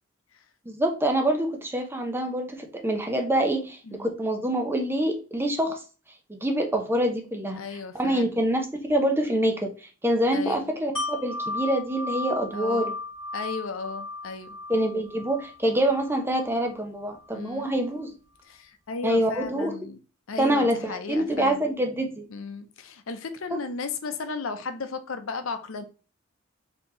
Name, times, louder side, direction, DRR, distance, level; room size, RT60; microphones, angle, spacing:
voice 1, 0.7-5.8 6.3-7.6 7.9-12.9 14.7-18.2 19.0-19.7 20.4-22.2 23.5-23.6, right 1 dB, 10° right, 0.7 m, -26 dB
voice 2, 7.6-8.3 10.3-10.7 12.5-13.0 13.3-14.6 17.3-17.7 18.5-20.0 20.3-21.6 22.3-25.8, left 4 dB, 85° left, 0.6 m, -35 dB
Wind chime, 10.9-16.7 17.1-17.3, left 2 dB, 5° left, 2.0 m, -35 dB
4.3 x 2.9 x 3.8 m
head